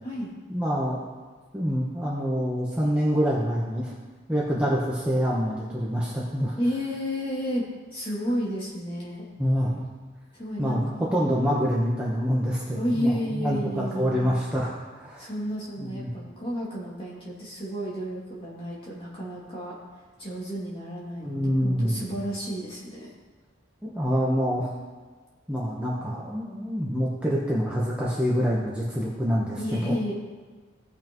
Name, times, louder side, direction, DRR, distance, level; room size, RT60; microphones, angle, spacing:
voice 1, 0.5-1.0 1.5-3.9 4.3-6.6 9.4-9.7 10.6-15.3 15.8-16.1 21.2-22.1 23.8-24.7 25.5-30.1, equal, 5° right, -6 dB, 1.0 m, -26 dB
voice 2, 6.6-7.6 7.9-9.2 10.3-11.4 12.7-14.3 15.2-19.7 20.2-23.1 29.6-30.1, equal, 25° left, -6 dB, 2.5 m, -31 dB
17.0 x 5.7 x 3.0 m, 1.4 s
head